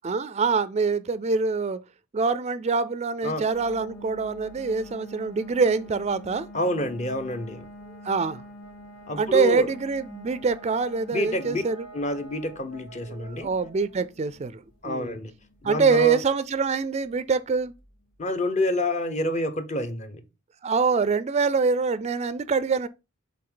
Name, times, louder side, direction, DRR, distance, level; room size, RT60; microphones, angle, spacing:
voice 1, 0.0-1.8 2.1-6.5 8.0-8.4 9.2-11.9 13.1-15.2 15.6-17.7 20.6-22.9, right 4 dB, 35° right, 0.4 m, -25 dB
sound 1, 3.5-18.1, equal, 90° left, 2.3 m, -46 dB
voice 2, 6.5-7.6 9.1-9.7 11.1-11.6 11.9-13.5 14.8-15.3 15.6-16.2 18.2-20.2, left 1 dB, 35° left, 0.9 m, -28 dB
7.7 x 3.5 x 3.9 m
head